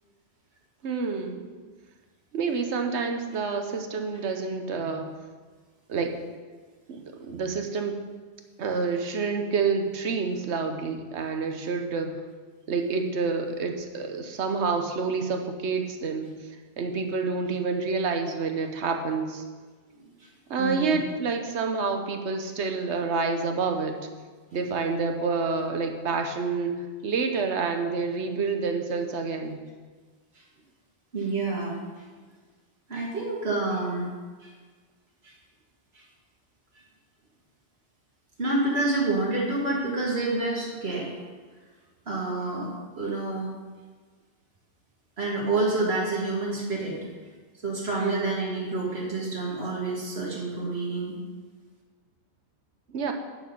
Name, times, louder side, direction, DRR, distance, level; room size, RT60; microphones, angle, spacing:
voice 1, 0.8-1.5 2.3-5.1 5.9-6.1 6.9-7.9 8.6-12.1 12.7-16.3 16.8-19.4 20.5-23.9 24.5-29.6 48.0-48.3 52.9-53.1, right 4 dB, 80° right, 5 dB, 1.2 m, -28 dB
voice 2, 20.0-20.3 20.6-21.0 31.1-31.8 32.9-34.1 34.4-34.5 35.2-35.3 35.9-36.0 38.4-41.1 42.1-43.5 45.2-47.0 47.6-51.2, right 2 dB, 65° right, -4 dB, 2.5 m, -28 dB
9.7 x 6.3 x 5.4 m, 1.4 s
omnidirectional pair, 1.2 m